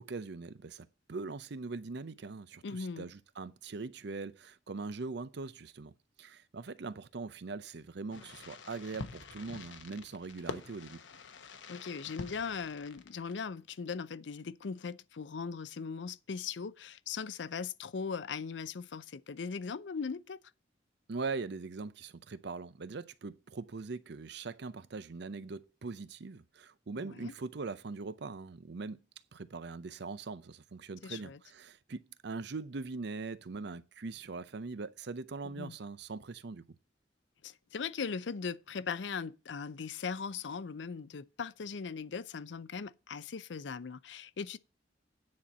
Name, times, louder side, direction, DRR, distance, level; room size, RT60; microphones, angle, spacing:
voice 1, 0.0-5.9 6.2-11.0 21.1-29.0 29.3-36.6, right 4 dB, 65° right, 0.6 m, -41 dB
voice 2, 2.6-3.0 11.7-20.4 26.9-27.3 31.0-31.4 35.6-35.8 37.4-44.6, left 5 dB, 75° left, 0.5 m, -39 dB
Fireworks, 8.1-13.7, left 3 dB, 90° left, 1.0 m, -47 dB
9.5 x 4.3 x 7.4 m
head